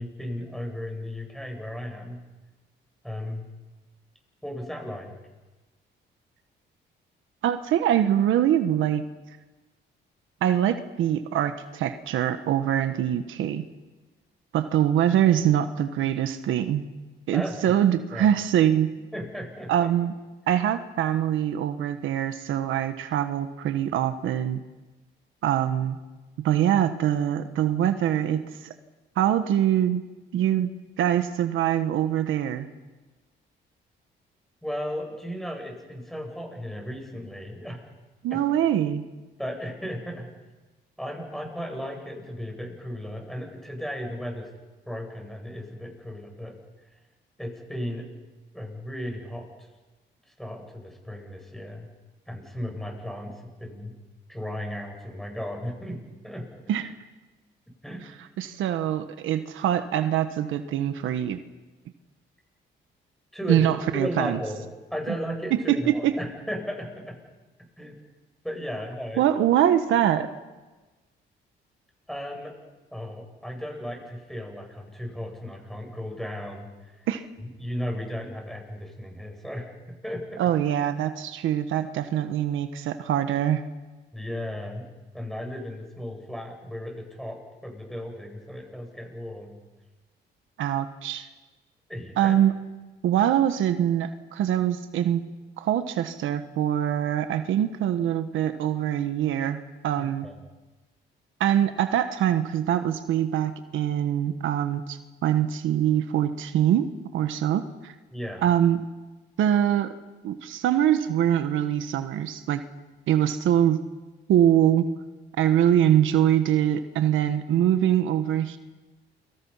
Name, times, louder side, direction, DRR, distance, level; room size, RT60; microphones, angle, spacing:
voice 1, 0.0-2.2 3.0-3.5 4.4-5.1 17.3-17.7 18.1-18.3 19.1-19.9 34.6-37.8 38.3-38.4 39.4-40.3 41.0-44.5 44.9-46.5 47.4-48.1 48.5-49.5 50.4-51.9 52.3-53.9 54.3-56.0 56.2-56.5 57.8-58.1 63.3-63.7 63.9-64.6 64.9-67.1 67.8-68.0 68.4-69.3 72.1-72.5 72.9-77.1 77.6-80.5 84.1-84.9 85.1-89.6 91.9-92.3 100.0-100.3 108.1-108.4, equal, ahead, 2 dB, 8.0 m, -35 dB
voice 2, 7.4-9.0 10.4-13.6 14.5-16.8 17.3-18.9 19.7-20.1 20.5-24.6 25.4-26.0 26.4-28.7 29.2-30.0 30.3-30.7 31.0-32.7 38.2-39.0 56.7-56.9 58.4-61.4 63.5-64.4 65.7-66.1 69.2-70.3 77.1-77.2 80.4-83.6 90.6-91.3 92.2-92.6 93.0-95.2 95.6-100.3 101.4-107.9 108.4-108.8 109.4-109.9 110.2-112.6 113.1-113.8 114.3-114.9 115.4-118.6, right 10 dB, 85° right, 9 dB, 1.4 m, -23 dB
29.5 x 24.5 x 5.8 m, 1.2 s
cardioid pair, 90°, 20 cm